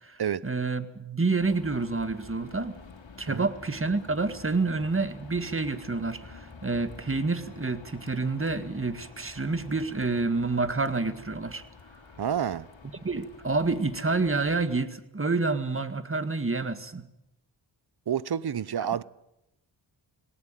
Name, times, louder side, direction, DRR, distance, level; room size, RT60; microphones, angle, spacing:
voice 1, 0.0-2.7 3.2-11.6 13.0-17.0 18.8-18.9, right 3 dB, 25° right, 1.9 m, -28 dB
sound 1, 1.4-14.8, left 4 dB, 75° left, 3.3 m, -49 dB
voice 2, 12.2-12.7 18.1-19.0, right 8 dB, 55° right, 0.8 m, -29 dB
20.0 x 18.5 x 9.1 m
wide cardioid pair, 75°, 46 cm